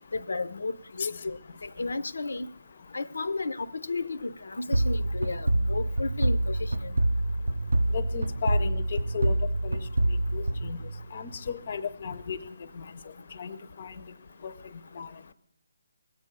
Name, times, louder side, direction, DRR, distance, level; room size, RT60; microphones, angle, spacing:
voice 1, 0.1-2.5 2.9-7.0, left 3 dB, 80° left, 0.6 m, -33 dB
sound 1, 4.7-11.3, right 1 dB, 90° right, 0.5 m, -27 dB
voice 2, 7.9-9.4 9.6-9.8 10.3-10.8 11.1-12.4 12.8-12.9 13.4-13.9 14.4-14.5 15.0-15.1, left 6 dB, 40° left, 0.6 m, -34 dB
21.0 x 8.3 x 6.6 m
hypercardioid pair, 170°, 0 cm